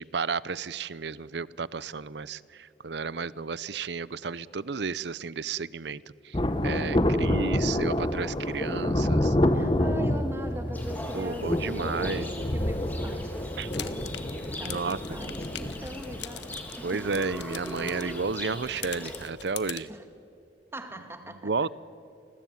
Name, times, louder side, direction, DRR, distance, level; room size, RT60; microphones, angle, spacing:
voice 1, 0.0-9.3 11.1-12.3 13.6-13.7 14.6-15.0 15.6-15.7 16.8-19.9 21.3-21.7, right 4 dB, 65° right, 19 dB, 0.7 m, -32 dB
Thunder, 6.3-18.3 18.6-18.7, left 1 dB, 25° left, 1.1 m, -28 dB
voice 2, 7.1-7.5 9.5-17.2 19.9-20.1 20.7-21.7, right 1 dB, 15° right, 7 dB, 2.0 m, -41 dB
Livestock farm animals working animals, 10.7-19.3, left 1 dB, 10° left, 3.4 m, -41 dB
sound 1, 13.6-19.8, left 11 dB, 70° left, 1.4 m, -43 dB
29.5 x 20.5 x 9.3 m, 2.7 s
head